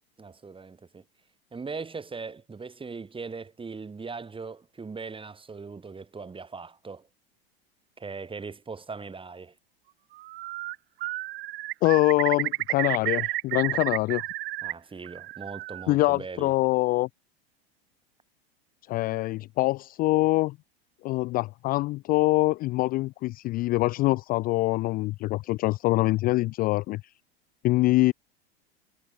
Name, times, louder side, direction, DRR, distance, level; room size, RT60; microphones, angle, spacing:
voice 1, 0.2-1.0 1.5-7.1 8.0-9.6 14.6-16.5, right 4 dB, 15° right, 7.0 m, -39 dB
Bird, 10.2-10.8 11.0-14.7 15.0-15.9, right 17 dB, 65° right, 1.4 m, -31 dB
voice 2, 11.8-14.2 15.9-17.1 18.9-20.6 21.0-27.1 27.6-28.1, left 19 dB, 30° left, 0.3 m, -24 dB
hypercardioid pair, 90°, 31 cm